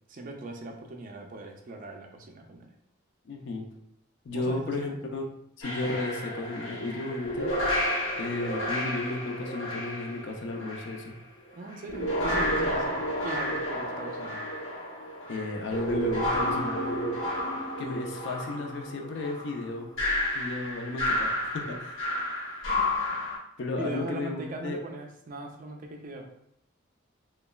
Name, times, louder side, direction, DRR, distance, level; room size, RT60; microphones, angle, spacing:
voice 1, 0.1-2.7 4.3-5.0 11.5-14.4 23.8-26.3, right 2 dB, 40° right, 3 dB, 0.3 m, -39 dB
voice 2, 3.2-3.7 4.2-5.3 5.6-7.7 8.2-11.2 15.3-17.2 17.8-19.9 20.3-22.0 23.6-24.8, left 2 dB, 60° left, 2 dB, 0.4 m, -33 dB
sound 1, 5.6-11.0 11.7-23.4, left 1 dB, 80° left, 1.0 m, -31 dB
3.0 x 2.2 x 2.2 m, 0.75 s
head